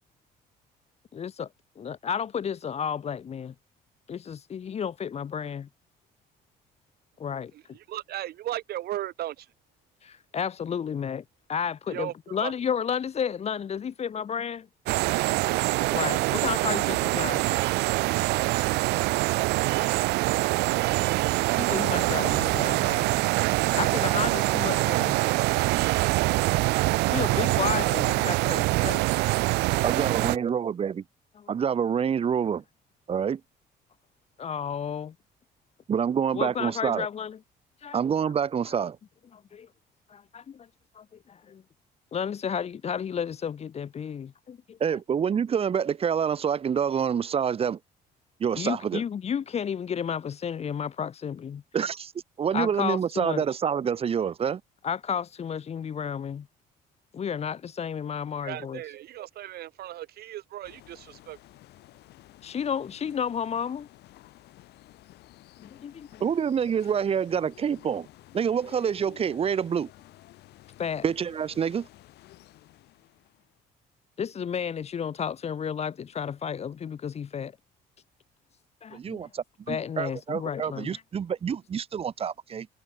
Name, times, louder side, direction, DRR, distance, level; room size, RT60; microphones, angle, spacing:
voice 1, 1.1-1.5 1.8-3.5 4.1-5.7 7.2-7.5 10.0-11.2 11.5-14.7 15.9-17.5 21.5-23.2 23.7-25.2 27.1-29.0 31.4-31.5 34.4-35.1 36.3-37.4 37.8-38.0 39.3-39.7 40.1-40.7 40.9-41.6 42.1-44.8 48.6-51.6 52.5-53.6 54.8-56.5 57.1-58.8 62.4-63.9 65.6-66.1 70.8-71.0 74.2-77.5 78.8-79.2 79.7-81.0, left 7 dB, 40° left, 1.3 m, -32 dB
voice 2, 7.5-9.5 11.9-12.5 58.4-61.4, right 13 dB, 70° right, 3.0 m, -36 dB
sound 1, 14.9-30.4, right 21 dB, 90° right, 0.8 m, -24 dB
voice 3, 29.8-31.0 31.5-32.6 33.1-33.4 35.9-37.1 37.9-39.0 44.8-47.8 48.4-49.0 51.7-52.1 52.4-54.6 66.2-68.1 68.3-69.9 71.0-71.9 78.9-82.7, right 7 dB, 35° right, 0.9 m, -27 dB
sound 2, 60.6-73.6, left 16 dB, 80° left, 5.1 m, -53 dB
cardioid pair, 110°, 17 cm